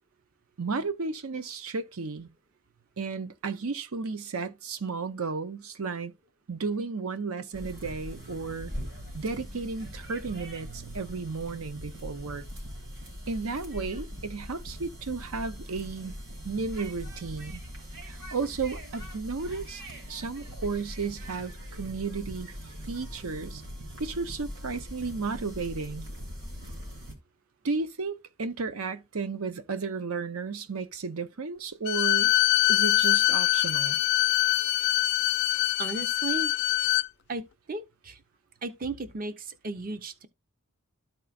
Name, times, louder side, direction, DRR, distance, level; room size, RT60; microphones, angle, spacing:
voice 1, 0.6-2.3 3.0-6.1 6.5-8.7 9.1-12.4 13.3-16.1 16.4-17.6 18.1-19.8 20.1-22.5 22.8-23.6 24.0-26.1 27.6-32.3 32.7-34.0, right 4 dB, 85° right, 0.7 m, -33 dB
sound 1, 7.5-27.1, equal, 60° right, 2.6 m, -41 dB
Bowed string instrument, 31.9-37.1, left 15 dB, 50° left, 0.3 m, -24 dB
voice 2, 35.8-36.5 37.3-37.4 37.7-38.2 38.6-40.3, right 3 dB, 40° right, 0.6 m, -35 dB
13.0 x 4.5 x 2.4 m
head